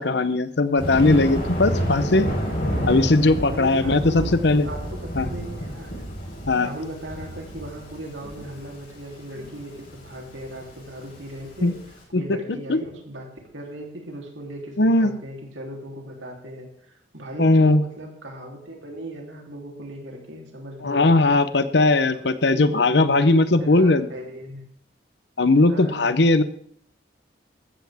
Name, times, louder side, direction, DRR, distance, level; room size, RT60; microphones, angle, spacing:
voice 1, 0.0-2.3 2.9-4.7 5.2-5.3 6.5-6.7 11.6-11.8 12.1-12.2 12.7-12.8 14.8-15.1 17.4-17.8 20.8-24.1 25.4-26.4, left 2 dB, 60° left, 13 dB, 0.9 m, -19 dB
Thunder, 0.8-11.9, equal, 45° left, 4.5 m, -30 dB
voice 2, 3.5-6.0 6.6-11.8 12.1-21.3 22.1-24.7 25.7-26.2, right 1 dB, 80° right, 1 dB, 3.4 m, -38 dB
14.5 x 13.5 x 3.6 m, 0.64 s
head